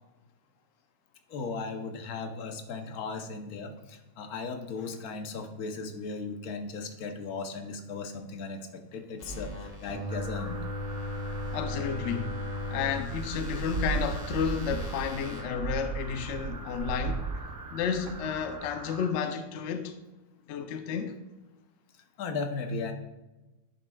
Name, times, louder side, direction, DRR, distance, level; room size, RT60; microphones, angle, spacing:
voice 1, 1.3-10.7 22.2-22.9, left 4 dB, 90° left, 1.3 m, -37 dB
sound 1, 9.2-15.4, left 2 dB, 35° left, 1.1 m, -38 dB
sound 2, 10.1-19.1, right 2 dB, 25° right, 0.4 m, -43 dB
voice 2, 11.5-12.4 12.7-17.3 17.7-20.0 20.5-21.1, left 7 dB, 65° left, 0.8 m, -32 dB
sound 3, 13.1-18.6, right 6 dB, 65° right, 0.8 m, -36 dB
9.6 x 7.5 x 2.3 m
omnidirectional pair, 1.5 m